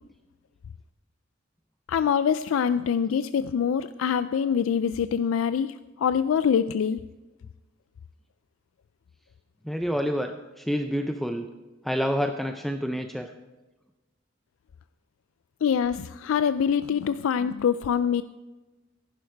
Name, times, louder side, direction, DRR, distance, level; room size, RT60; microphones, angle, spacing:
voice 1, 1.9-7.0 15.6-18.2, left 7 dB, 85° left, 13 dB, 0.3 m, -24 dB
voice 2, 9.7-11.5 11.8-13.3, equal, ahead, 6 dB, 0.4 m, -28 dB
14.5 x 11.0 x 4.6 m, 1.1 s
head